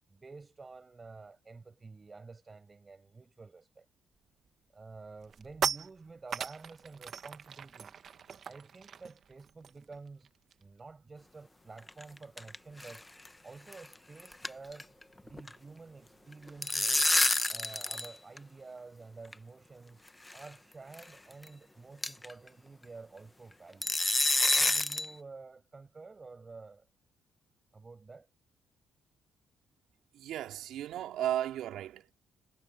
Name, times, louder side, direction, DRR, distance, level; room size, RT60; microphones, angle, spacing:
voice 1, 0.1-3.9 4.7-8.0 8.5-10.3 10.6-13.1 13.4-14.9 15.2-17.2 17.5-20.0 20.3-24.0 24.5-26.9 27.7-28.3, right 4 dB, 30° right, 7.0 m, -50 dB
sound 1, 4.2-4.5 4.9-10.8 11.1-11.3 11.6-16.6, right 7 dB, 55° right, 1.2 m, -41 dB
sound 2, 11.8-12.6 12.8-13.0 13.3-13.4 13.7-13.9 14.2-15.0 15.3-15.5 16.3-18.1 18.4-18.5 19.3-19.4 20.3-20.5 20.9-21.0 21.4-21.5 22.0-22.3 23.8-25.1, left 2 dB, 15° left, 0.9 m, -28 dB
voice 2, 30.1-32.1, right 12 dB, 80° right, 3.5 m, -35 dB
cardioid pair, 90°, 0 cm